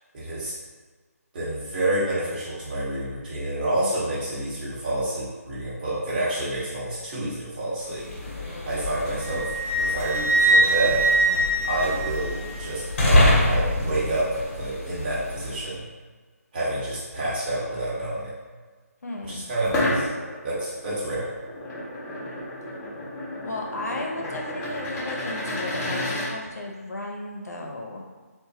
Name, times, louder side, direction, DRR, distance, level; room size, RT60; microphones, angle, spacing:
voice 1, 0.1-0.5 1.3-8.1 8.6-9.5 9.8-11.0 11.7-14.3 14.6-15.8 16.5-18.3 19.3-20.1 20.4-21.3, right 1 dB, 35° right, -9 dB, 0.9 m, -28 dB
sound 1, 7.8-15.7, left 1 dB, 40° left, 0.8 m, -26 dB
Wind instrument woodwind instrument, 9.2-12.7, right 2 dB, 60° right, 0.6 m, -23 dB
voice 2, 19.0-19.4 23.4-28.0, left 2 dB, 85° left, 0 dB, 0.5 m, -34 dB
sound 2, 19.6-26.3, left 1 dB, 10° left, 0.4 m, -31 dB
2.9 x 2.2 x 2.7 m, 1.4 s
figure-of-eight pair, 155°, 9 cm